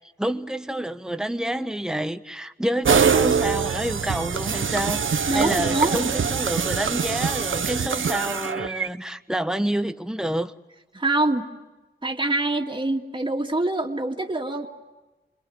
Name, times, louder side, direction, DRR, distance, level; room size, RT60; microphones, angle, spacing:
voice 1, 0.2-10.5, right 1 dB, 5° right, 1.2 m, -28 dB
sound 1, 2.8-8.9, right 6 dB, 80° right, 1.0 m, -24 dB
voice 2, 5.3-6.1 10.9-11.5 12.0-14.7, right 2 dB, 25° right, 2.3 m, -24 dB
28.5 x 22.0 x 9.4 m
wide cardioid pair, 65°, 20 cm